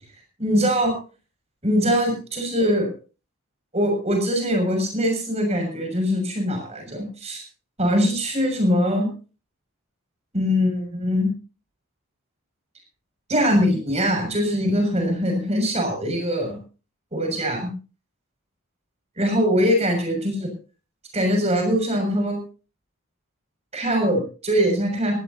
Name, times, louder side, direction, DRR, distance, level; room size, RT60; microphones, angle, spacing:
voice 1, 0.4-0.9 1.6-2.9 3.7-7.4 7.8-9.1 10.3-11.3 13.3-16.6 17.1-17.7 19.2-20.5 21.1-22.4 23.7-25.2, equal, 30° right, 3 dB, 6.6 m, -22 dB
18.5 x 17.5 x 2.8 m, 0.37 s
head